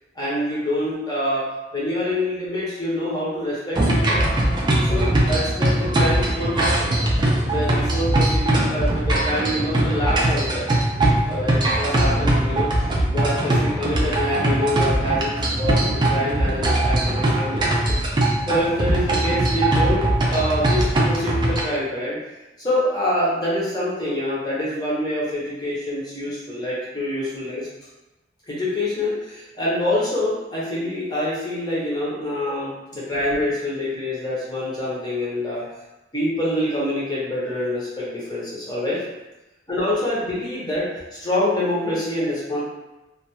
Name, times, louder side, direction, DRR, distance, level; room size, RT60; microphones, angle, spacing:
voice 1, 0.2-1.4 1.7-4.2 4.8-6.9 7.4-10.7 11.3-12.7 13.1-17.7 18.5-22.2 22.6-27.7 28.5-35.6 36.1-39.0 39.7-40.9 41.2-42.6, left 1 dB, 20° left, -8 dB, 0.7 m, -26 dB
sound 1, 3.7-21.6, right 1 dB, 25° right, 0.3 m, -21 dB
2.2 x 2.2 x 2.8 m, 1.0 s
head